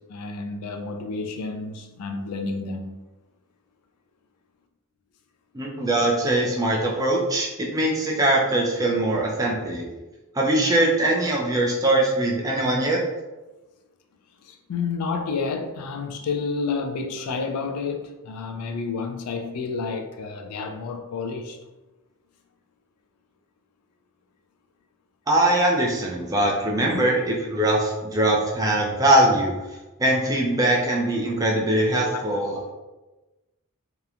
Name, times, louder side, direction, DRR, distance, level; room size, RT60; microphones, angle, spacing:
voice 1, 0.0-3.0 14.4-21.6 26.8-27.0 32.1-32.7, left 4 dB, 85° left, 0.4 m, -30 dB
voice 2, 5.5-9.9 10.3-13.0 25.3-29.5 30.0-32.7, right 1 dB, 15° right, 0.4 m, -22 dB
2.9 x 2.1 x 2.4 m
head